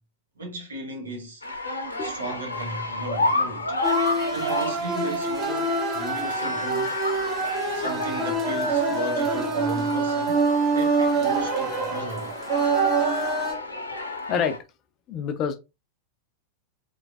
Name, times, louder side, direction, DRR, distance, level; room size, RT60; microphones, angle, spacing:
voice 1, 0.3-1.4 2.0-3.8 4.3-7.0 7.7-10.4 10.7-12.4 12.8-13.0, right 2 dB, 70° right, 1.2 m, -35 dB
sound 1, 1.4-14.6, left 2 dB, 75° left, 0.8 m, -31 dB
sound 2, 3.8-13.5, right 3 dB, 30° right, 1.4 m, -25 dB
voice 2, 3.9-4.3 7.5-7.8 14.3-14.6 15.1-15.6, left 7 dB, 35° left, 0.6 m, -29 dB
3.8 x 3.3 x 2.4 m
figure-of-eight pair, 90°, 0 cm